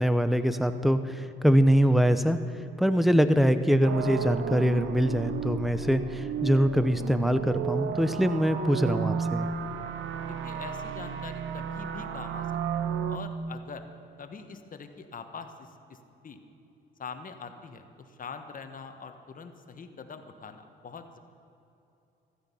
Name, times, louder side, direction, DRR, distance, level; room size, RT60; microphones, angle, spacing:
voice 1, 0.0-2.4 2.8-9.5, equal, ahead, 11 dB, 0.8 m, -23 dB
sound 1, 3.8-13.2, right 7 dB, 75° right, 0.8 m, -33 dB
voice 2, 10.3-13.9 14.2-16.0 16.2-16.4 17.0-21.2, left 5 dB, 45° left, 7 dB, 1.4 m, -44 dB
15.5 x 13.0 x 5.6 m, 2.9 s
cardioid pair, 90°, 20 cm